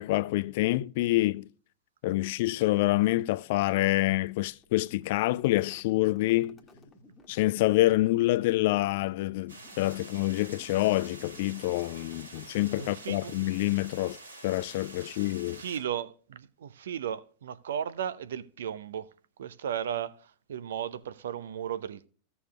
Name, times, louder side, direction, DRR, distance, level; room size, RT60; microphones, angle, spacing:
voice 1, 0.0-1.5 2.0-6.6 7.3-14.2 14.4-15.6, left 18 dB, 50° left, 0.3 m, -27 dB
sound 1, 4.6-13.6, left 1 dB, 15° left, 1.4 m, -55 dB
sound 2, 9.5-15.8, right 2 dB, 90° right, 4.1 m, -48 dB
voice 2, 12.8-13.3 15.0-15.2 15.6-19.1 19.4-20.1 20.5-22.1, right 9 dB, 60° right, 0.6 m, -35 dB
15.5 x 6.9 x 2.3 m
figure-of-eight pair, 90°, 0 cm